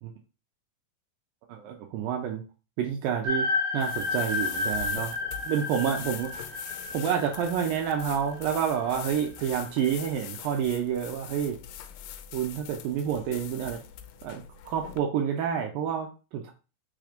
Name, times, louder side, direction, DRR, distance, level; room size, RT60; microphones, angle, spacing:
voice 1, 1.5-2.4 2.8-3.5 3.7-5.2 5.4-6.7 6.9-11.6 12.3-13.8 14.2-16.5, right 8 dB, 75° right, 3 dB, 2.4 m, -29 dB
sound 1, 3.2-9.4, left 3 dB, 45° right, 1.3 m, -32 dB
sound 2, 3.8-15.0, left 10 dB, 80° left, 2.1 m, -43 dB
6.3 x 3.4 x 5.0 m, 0.32 s
omnidirectional pair, 4.3 m